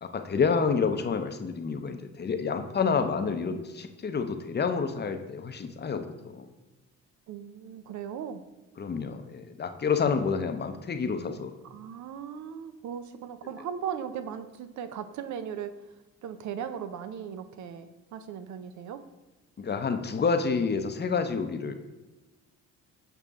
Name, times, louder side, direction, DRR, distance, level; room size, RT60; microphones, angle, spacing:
voice 1, 0.0-6.5 8.8-11.5 19.6-21.7, left 5 dB, 35° left, 7 dB, 0.7 m, -29 dB
voice 2, 7.3-8.4 11.6-15.8 16.2-19.0, right 8 dB, 70° right, 10 dB, 0.6 m, -38 dB
6.9 x 5.7 x 3.6 m, 1.1 s
cardioid pair, 90°, 30 cm